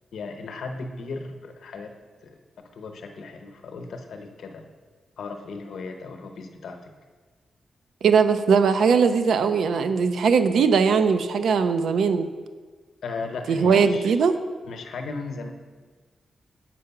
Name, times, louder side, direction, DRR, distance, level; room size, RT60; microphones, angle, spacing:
voice 1, 0.1-1.9 2.2-2.4 2.7-4.6 5.2-6.9 13.0-14.1 14.6-15.5, left 4 dB, 85° left, 4 dB, 0.8 m, -36 dB
voice 2, 8.0-12.3 13.5-14.3, right 5 dB, 80° right, 9 dB, 0.4 m, -20 dB
7.6 x 4.7 x 5.8 m, 1.4 s
wide cardioid pair, 170°, 0 cm